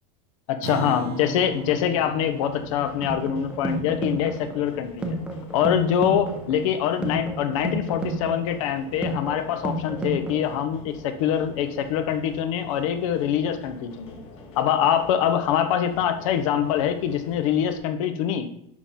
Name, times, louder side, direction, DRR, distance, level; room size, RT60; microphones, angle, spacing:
voice 1, 0.5-5.2 5.5-14.2 14.5-18.5, left 9 dB, 65° left, 9 dB, 1.0 m, -24 dB
Acoustic guitar, 0.6-5.3, right 7 dB, 55° right, 0.8 m, -38 dB
sound 1, 1.1-17.8, left 3 dB, 30° left, 1.2 m, -45 dB
sound 2, 2.8-10.8, right 1 dB, 5° right, 0.6 m, -32 dB
11.0 x 3.8 x 4.2 m, 0.69 s
supercardioid pair, 170°, 18 cm